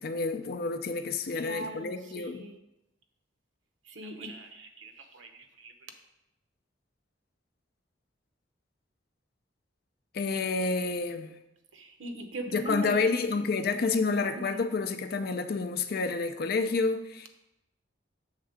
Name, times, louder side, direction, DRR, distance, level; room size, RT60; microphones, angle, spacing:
voice 1, 0.0-2.5 10.1-11.3 12.5-17.3, left 4 dB, 55° left, 8 dB, 0.5 m, -29 dB
voice 2, 1.4-2.6 3.9-5.7 11.7-13.1 14.4-14.6, right 1 dB, 90° right, 6 dB, 0.7 m, -40 dB
6.5 x 3.5 x 5.0 m, 0.88 s
head